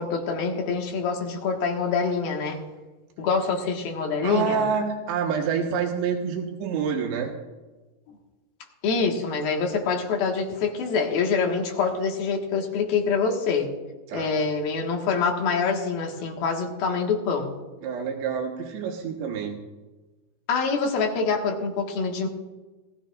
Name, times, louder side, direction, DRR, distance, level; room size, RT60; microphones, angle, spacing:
voice 1, 0.0-2.6 3.2-4.6 8.8-13.7 14.1-17.5 20.5-22.3, left 5 dB, 65° left, 1 dB, 3.2 m, -25 dB
voice 2, 4.2-7.3 14.1-14.3 17.8-19.6, right 6 dB, 90° right, 1 dB, 3.5 m, -27 dB
19.5 x 15.5 x 2.5 m, 1.2 s
omnidirectional pair, 4.8 m